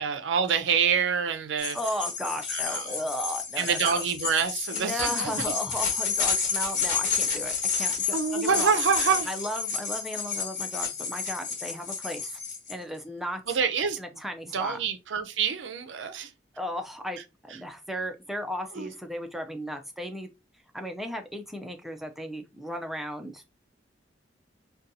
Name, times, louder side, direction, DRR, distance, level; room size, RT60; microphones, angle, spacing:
voice 1, 0.0-1.8 2.5-3.0 3.6-5.6 8.1-9.3 13.5-14.0 14.5-16.3 18.7-18.9, right 6 dB, 70° right, 0.5 m, -27 dB
sound 1, 1.6-12.7, left 5 dB, 45° left, 1.3 m, -30 dB
voice 2, 1.7-4.0 4.7-8.7 9.3-12.4 12.7-13.4 14.0-14.8 16.6-20.3 20.7-23.6, equal, ahead, 0.5 m, -35 dB
3.9 x 2.3 x 2.6 m
head